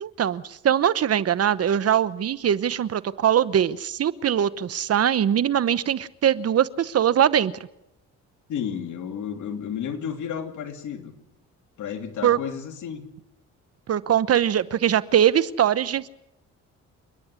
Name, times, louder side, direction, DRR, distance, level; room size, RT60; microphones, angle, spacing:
voice 1, 0.0-7.5 12.2-12.4 13.9-16.1, right 9 dB, 55° right, 16 dB, 1.0 m, -22 dB
voice 2, 8.5-11.1 11.8-13.0, left 8 dB, 75° left, 4 dB, 3.0 m, -32 dB
28.0 x 10.5 x 9.8 m, 0.87 s
cardioid pair, 90°, 30 cm